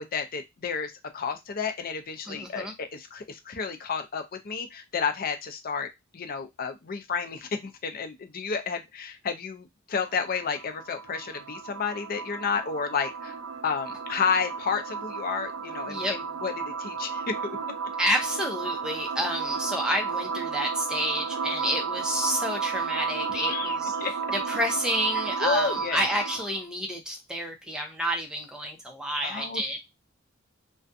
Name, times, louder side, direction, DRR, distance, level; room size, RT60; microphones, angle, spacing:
voice 1, 0.0-13.4 13.6-17.6 23.3-24.1 25.4-26.1 29.2-29.6, left 5 dB, 45° left, 7 dB, 0.5 m, -31 dB
voice 2, 2.3-2.7 15.9-16.1 18.0-23.9 24.3-29.8, equal, 5° right, 2 dB, 0.6 m, -29 dB
sound 1, 9.9-26.6, right 5 dB, 65° right, 0.4 m, -33 dB
2.5 x 2.2 x 2.5 m, 0.19 s
head